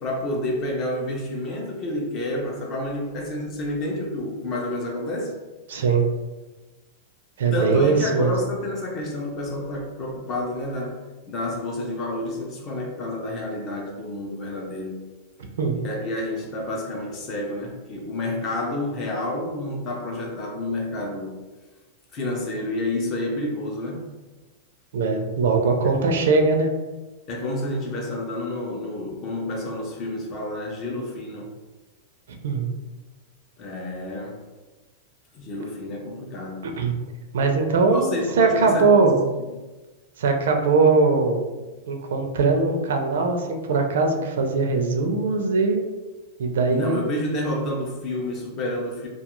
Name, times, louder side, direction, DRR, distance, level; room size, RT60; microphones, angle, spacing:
voice 1, 0.0-5.3 7.5-11.0 11.3-15.0 15.8-21.4 22.1-24.1 26.0-26.1 27.3-31.5 33.6-34.4 35.3-36.7 37.5-39.3 46.7-49.1, left 1 dB, 25° left, 0 dB, 0.4 m, -29 dB
voice 2, 5.7-6.1 7.4-8.4 15.6-15.8 24.9-26.7 32.4-32.7 36.6-36.9 37.3-39.1 40.2-41.5 41.9-45.8 46.4-47.0, right 4 dB, 80° right, 4 dB, 0.4 m, -21 dB
2.3 x 2.3 x 2.9 m, 1.2 s
supercardioid pair, 175°, 0 cm